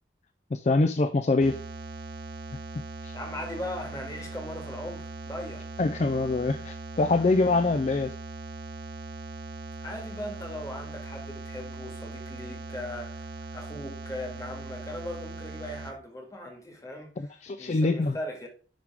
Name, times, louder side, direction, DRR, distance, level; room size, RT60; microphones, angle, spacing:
voice 1, 0.5-1.6 2.7-3.1 5.8-8.2 17.2-18.2, left 3 dB, 40° left, 0.4 m, -25 dB
sound 1, 1.4-15.9, right 3 dB, 65° right, 0.9 m, -40 dB
voice 2, 3.1-5.7 9.8-18.5, left 1 dB, 20° left, 1.9 m, -39 dB
10.5 x 3.6 x 3.4 m
head